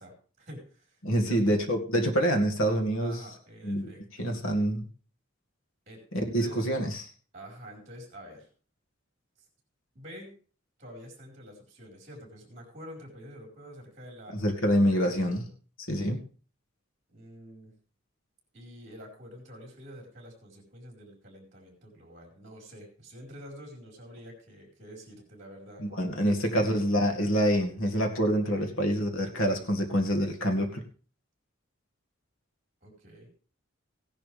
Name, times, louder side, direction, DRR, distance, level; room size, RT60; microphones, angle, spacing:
voice 1, 0.0-1.0 1.3-1.6 3.0-4.3 5.9-6.6 7.3-8.5 9.9-10.3 10.8-15.5 17.1-17.7 18.5-26.8 28.5-28.8 32.8-33.4, equal, 35° right, 0 dB, 4.5 m, -48 dB
voice 2, 1.0-3.1 3.6-3.9 4.2-4.9 6.1-7.1 14.3-15.5 15.9-16.2 25.8-30.8, equal, 80° left, 3 dB, 2.1 m, -26 dB
16.0 x 10.5 x 3.4 m, 0.39 s
head